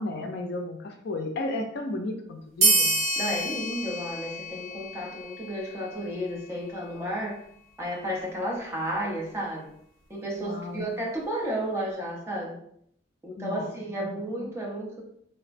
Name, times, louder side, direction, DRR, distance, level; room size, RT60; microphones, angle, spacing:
voice 1, 0.0-3.0 10.4-10.8 13.4-13.7, left 2 dB, 55° left, 4 dB, 0.4 m, -33 dB
sound 1, 2.6-5.6, right 2 dB, 70° right, 0.8 m, -27 dB
voice 2, 3.2-7.4 7.8-9.7 10.1-12.6 13.2-15.0, right 1 dB, 15° right, -3 dB, 0.6 m, -32 dB
3.4 x 2.1 x 2.4 m, 0.68 s
head